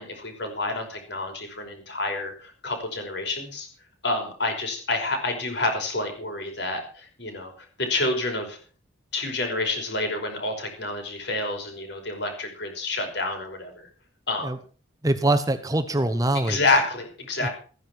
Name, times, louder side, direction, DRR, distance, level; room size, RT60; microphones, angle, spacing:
voice 1, 0.0-3.7 4.0-7.5 7.8-8.6 9.1-13.9 14.3-14.5 16.3-17.5, left 2 dB, 55° left, 3 dB, 5.5 m, -28 dB
voice 2, 15.0-16.6 17.4-17.5, right 1 dB, 15° right, 9 dB, 0.9 m, -23 dB
15.0 x 10.5 x 6.2 m, 0.40 s
head